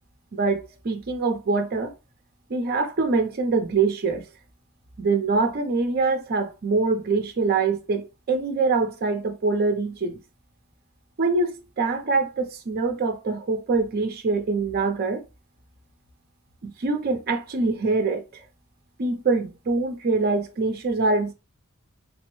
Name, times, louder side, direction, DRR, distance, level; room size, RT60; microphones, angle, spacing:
voice 1, 0.3-1.9 2.5-4.3 5.0-10.2 11.2-15.2 16.6-18.4 19.0-21.3, right 3 dB, 45° right, 0.5 m, -24 dB
3.3 x 2.0 x 3.0 m
head